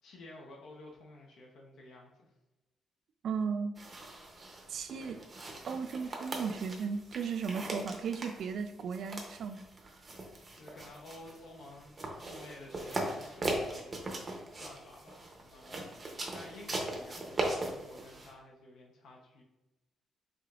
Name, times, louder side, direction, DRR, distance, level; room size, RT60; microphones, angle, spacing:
voice 1, 0.0-2.3 5.0-5.3 10.5-14.1 14.5-19.4, left 2 dB, 60° left, -1 dB, 0.7 m, -52 dB
voice 2, 3.2-3.7 4.7-5.2 5.7-9.6, right 6 dB, 50° right, 9 dB, 0.3 m, -35 dB
sound 1, 3.8-18.3, right 2 dB, 20° right, 0.6 m, -40 dB
4.9 x 3.7 x 2.4 m, 1.0 s
cardioid pair, 180°, 0 cm